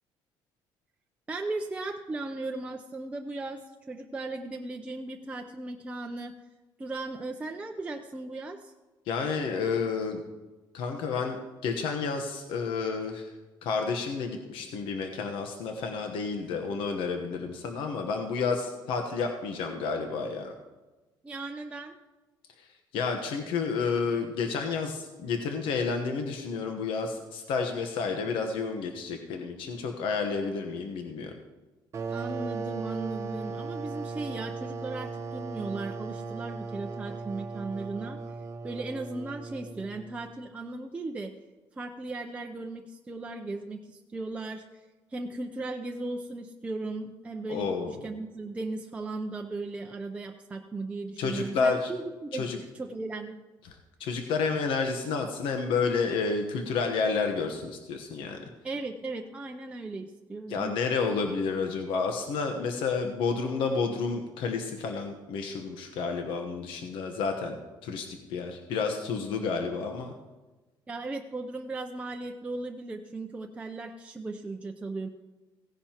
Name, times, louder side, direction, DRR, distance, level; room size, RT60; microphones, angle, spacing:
voice 1, 1.3-6.4 6.8-8.7 21.2-22.0 32.1-38.2 38.6-41.4 41.8-44.8 45.1-52.5 52.7-53.4 58.6-60.8 70.9-75.1, right 3 dB, 15° right, 2 dB, 0.5 m, -37 dB
voice 2, 9.1-10.2 10.7-11.4 11.6-13.3 13.6-20.5 22.6-22.7 22.9-31.3 47.5-48.0 51.2-51.9 52.3-52.6 54.0-58.4 60.5-67.6 67.8-70.1, left 5 dB, 80° left, 4 dB, 1.1 m, -30 dB
sound 1, 31.9-40.3, right 4 dB, 35° right, 0.9 m, -37 dB
16.5 x 10.5 x 3.0 m, 1.2 s
cardioid pair, 145°, 9 cm